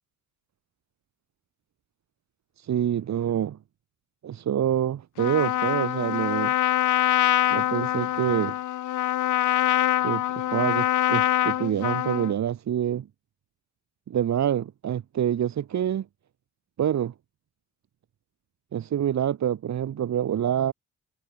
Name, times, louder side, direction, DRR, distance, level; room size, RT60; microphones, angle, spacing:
voice 1, 2.6-3.6 4.2-6.6 7.5-8.6 10.0-13.1 14.1-16.1 16.8-17.1 18.7-20.7, right 10 dB, 65° right, 7.7 m, -26 dB
Trumpet, 5.2-12.3, left 14 dB, 80° left, 2.3 m, -24 dB
cardioid pair, 90°, 30 cm